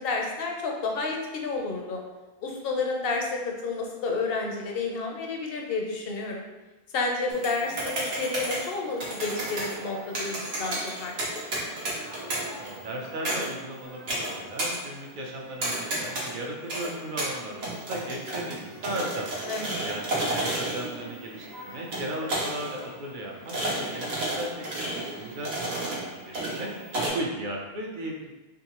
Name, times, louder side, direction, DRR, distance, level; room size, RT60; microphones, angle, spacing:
voice 1, 0.0-2.0 2.4-6.4 6.9-11.4 19.5-19.8, left 3 dB, 70° left, 1 dB, 0.9 m, -30 dB
sound 1, 7.3-27.1, right 1 dB, 75° right, 1.2 m, -33 dB
voice 2, 12.1-19.3 19.8-24.7 24.9-26.7 27.1-28.3, right 1 dB, 55° right, 0 dB, 0.8 m, -36 dB
3.7 x 3.1 x 2.9 m, 1.1 s
omnidirectional pair, 1.0 m